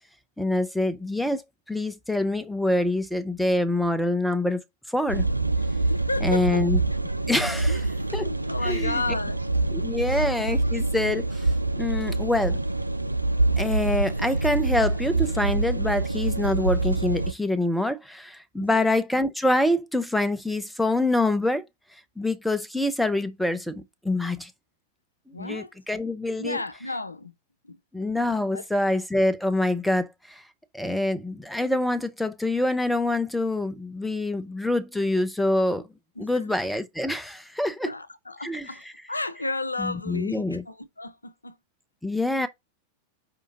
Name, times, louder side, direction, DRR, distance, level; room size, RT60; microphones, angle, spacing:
voice 1, 0.4-1.4 1.7-4.6 4.9-5.2 6.2-6.8 7.3-7.8 8.1-8.3 8.7-9.0 9.7-11.5 11.8-12.6 13.6-21.6 22.2-24.5 25.4-26.6 27.9-30.4 30.7-35.8 36.2-37.9 38.4-38.7 39.8-40.6 42.0-42.5, left 1 dB, ahead, 0.6 m, -25 dB
sound 1, 5.1-17.3, right 2 dB, 85° right, 0.3 m, -26 dB
voice 2, 5.9-6.7 7.7-9.4 18.6-18.9 25.3-25.7 26.4-27.3 27.6-27.8 28.5-28.7 36.2-36.5 37.9-41.6, left 2 dB, 80° left, 0.4 m, -33 dB
4.9 x 2.8 x 3.8 m
figure-of-eight pair, 90°, 0 cm